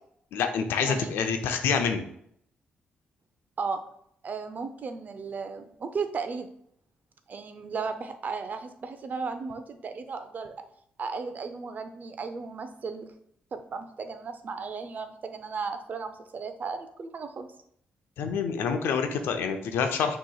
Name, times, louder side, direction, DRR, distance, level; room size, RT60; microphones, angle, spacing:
voice 1, 0.3-2.0 18.2-20.2, left 6 dB, 80° left, 6 dB, 0.5 m, -27 dB
voice 2, 0.8-1.2 3.6-3.8 4.2-6.5 7.3-10.5 11.0-13.1 13.5-17.5, right 5 dB, 50° right, 8 dB, 0.5 m, -35 dB
6.1 x 3.0 x 2.3 m, 0.69 s
supercardioid pair, 60°, 4 cm